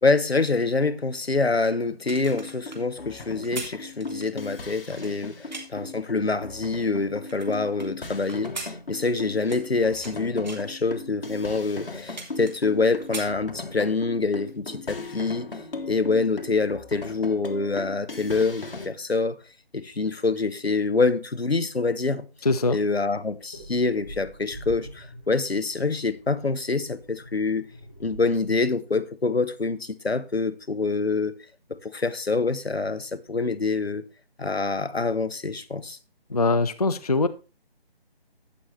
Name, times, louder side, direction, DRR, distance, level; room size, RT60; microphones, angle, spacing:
voice 1, 0.0-15.5 15.9-19.4 19.7-22.3 22.7-27.7 28.0-31.4 31.7-34.1 34.4-36.0, left 3 dB, 85° left, 1.0 m, -26 dB
sound 1, 1.9-5.9 6.5-7.9 8.3-10.1 10.4-10.7 11.3-11.4 11.7-12.8 13.0-14.0 14.4-14.5, right 3 dB, 45° right, 2.1 m, -40 dB
sound 2, 2.0-18.9, left 3 dB, 65° left, 1.4 m, -38 dB
voice 2, 22.4-22.8 36.3-37.3, left 3 dB, 40° left, 0.4 m, -22 dB
sound 3, 22.4-22.5 23.0-28.6, equal, 10° left, 0.7 m, -43 dB
11.5 x 8.3 x 3.2 m
figure-of-eight pair, 155°, 30 cm